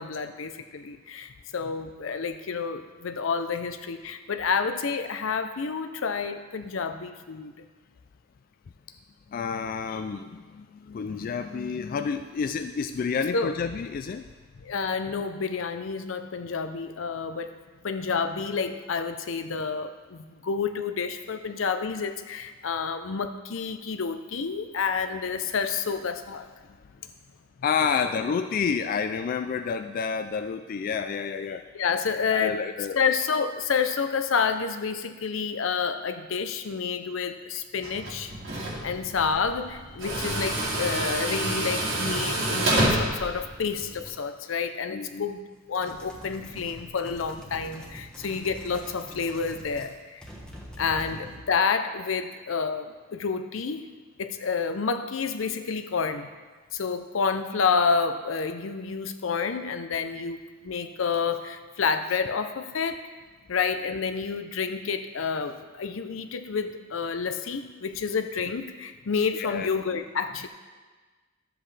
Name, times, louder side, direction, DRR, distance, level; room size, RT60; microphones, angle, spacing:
voice 1, 0.0-7.5 13.3-13.6 14.6-17.6 17.8-26.5 31.7-32.6 32.9-38.3 38.8-50.2 50.8-53.9 54.2-56.3 56.7-60.4 60.6-63.0 63.5-70.5, left 5 dB, 80° left, 9 dB, 0.6 m, -29 dB
voice 2, 9.3-14.3 27.6-31.6 32.3-33.0 44.9-45.2 69.3-69.7, left 6 dB, 45° left, 8 dB, 0.3 m, -29 dB
Tools, 37.8-44.1, right 1 dB, 70° right, 2.1 m, -28 dB
sound 1, 45.7-49.9 50.2-51.5, equal, 5° left, 1.2 m, -44 dB
12.5 x 7.8 x 3.3 m, 1.4 s
head